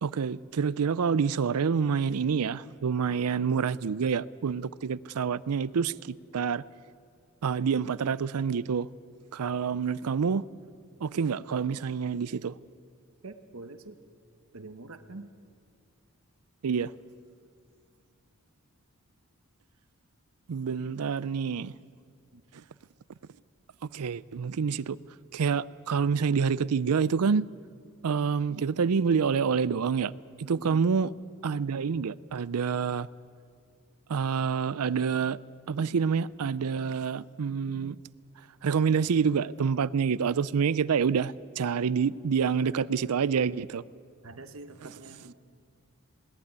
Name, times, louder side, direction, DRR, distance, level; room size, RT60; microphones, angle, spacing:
voice 1, 0.0-6.6 7.4-8.9 9.3-10.4 11.0-12.5 16.6-16.9 20.5-21.7 23.9-25.0 25.3-27.4 28.0-30.1 30.4-31.1 31.4-33.1 34.1-35.4 35.7-38.0 38.6-43.8, right 6 dB, 90° right, 0.5 m, -27 dB
voice 2, 13.2-13.9 14.5-15.3 22.3-22.4 30.4-30.8 44.2-45.3, right 2 dB, 65° right, 1.1 m, -45 dB
20.5 x 17.5 x 9.6 m
head